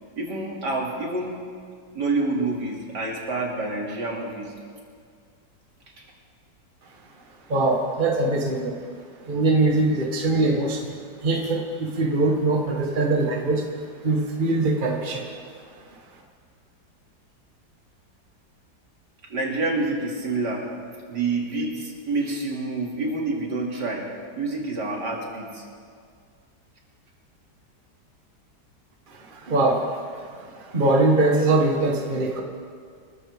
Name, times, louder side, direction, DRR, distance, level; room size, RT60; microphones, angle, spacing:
voice 1, 0.2-1.4 1.9-4.5 19.3-20.7 21.1-24.0 24.4-25.6, right 3 dB, 70° right, -2 dB, 3.2 m, -27 dB
voice 2, 7.5-8.8 9.3-10.9 11.2-13.7 14.0-15.4 29.1-32.4, right 2 dB, 30° right, 0 dB, 1.6 m, -22 dB
26.5 x 14.5 x 3.6 m, 2.1 s
omnidirectional pair, 1.9 m